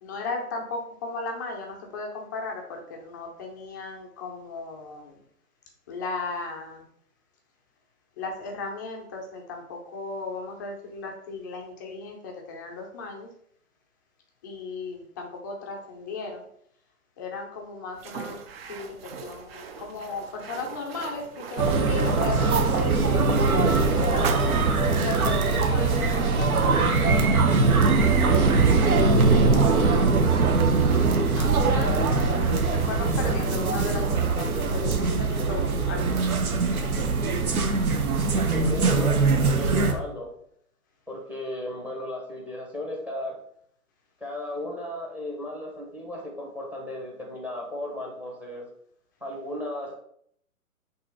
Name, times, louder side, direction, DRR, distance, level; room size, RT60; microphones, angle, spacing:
voice 1, 0.0-5.2 5.9-6.8 8.2-13.3 14.4-16.5 17.2-18.4 18.7-19.0 19.2-26.5 27.1-28.9 29.3-30.1 31.4-36.3, left 3 dB, 15° left, 1 dB, 0.5 m, -36 dB
sound 1, 18.0-26.8, right 6 dB, 40° right, 0.7 m, -39 dB
sound 2, 21.6-39.9, right 4 dB, 70° right, 1.2 m, -22 dB
voice 2, 38.3-40.3 41.1-43.4 44.2-48.7 49.2-49.9, left 1 dB, 5° right, 0 dB, 0.8 m, -35 dB
6.2 x 3.0 x 5.2 m, 0.66 s
figure-of-eight pair, 130°, 45 cm